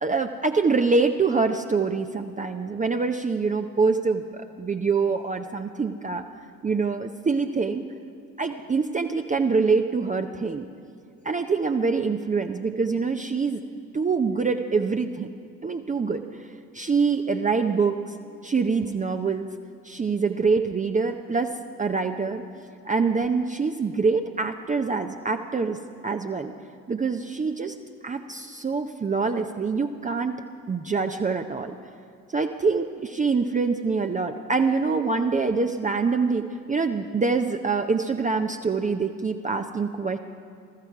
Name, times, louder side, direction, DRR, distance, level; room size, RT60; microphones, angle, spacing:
voice 1, 0.0-6.2 6.6-7.8 8.4-10.7 11.2-13.6 13.9-15.3 15.6-16.5 16.7-18.1 18.4-19.5 19.8-21.5 21.8-22.4 22.8-25.8 26.0-26.5 26.9-27.8 28.0-30.4 30.7-31.8 32.3-40.2, right 4 dB, 20° right, 6 dB, 0.7 m, -25 dB
19.5 x 13.5 x 4.8 m, 2.5 s
figure-of-eight pair, 50°, 43 cm